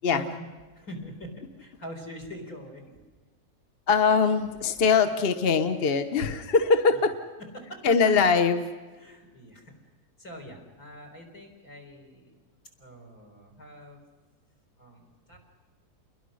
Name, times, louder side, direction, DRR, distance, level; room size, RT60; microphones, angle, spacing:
voice 1, 0.7-3.0 7.5-7.9 8.9-9.7 10.2-12.4 12.8-14.0 14.8-15.4, equal, 60° left, 4 dB, 4.5 m, -44 dB
voice 2, 3.9-7.1 7.8-8.7, left 5 dB, 45° left, 9 dB, 1.0 m, -22 dB
29.0 x 21.5 x 6.3 m, 1.3 s
omnidirectional pair, 1.7 m